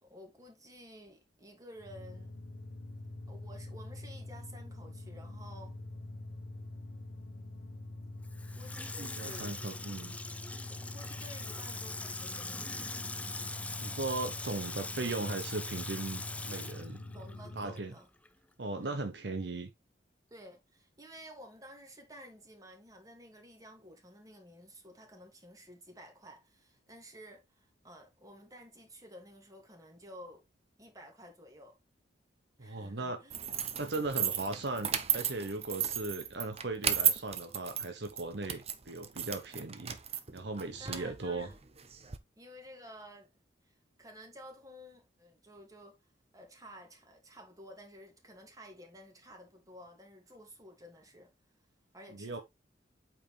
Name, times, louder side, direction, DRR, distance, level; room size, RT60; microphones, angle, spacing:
voice 1, 0.0-2.3 3.3-5.8 7.5-7.6 8.5-9.5 10.7-12.9 17.1-18.1 18.8-19.0 20.3-30.4 30.8-31.8 32.6-33.5 40.8-41.6 42.4-43.3 43.7-46.0 46.3-51.3 51.9-52.4, equal, 20° right, 2.3 m, -52 dB
sound 1, 1.8-17.9, left 2 dB, 80° left, 1.1 m, -45 dB
Water tap faucet / Sink (filling or washing), 8.2-17.9 18.3-18.4, left 3 dB, 5° left, 0.4 m, -42 dB
voice 2, 9.0-10.1 13.8-17.0 17.6-17.9 18.6-19.7 32.6-33.2 33.8-40.0 40.3-41.5 52.1-52.4, right 2 dB, 65° right, 0.9 m, -38 dB
sound 2, 33.3-42.2, right 8 dB, 35° right, 0.8 m, -34 dB
8.5 x 4.7 x 3.3 m
head